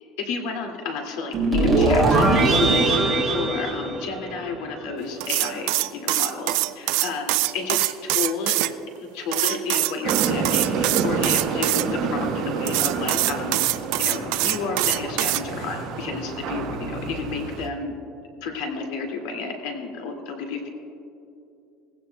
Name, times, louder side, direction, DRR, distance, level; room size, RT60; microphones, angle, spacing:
voice 1, 0.2-6.5 7.0-8.6 9.0-18.0 18.4-20.7, left 4 dB, 75° left, 2 dB, 2.2 m, -31 dB
sound 1, 1.3-4.6, right 2 dB, 5° right, 2.8 m, -20 dB
sound 2, 5.2-8.7 9.3-11.8 12.6-15.4, right 18 dB, 70° right, 0.4 m, -23 dB
sound 3, 10.0-17.7, right 5 dB, 50° right, 1.1 m, -29 dB
18.5 x 16.0 x 2.3 m, 2.7 s
cardioid pair, 160°, 0 cm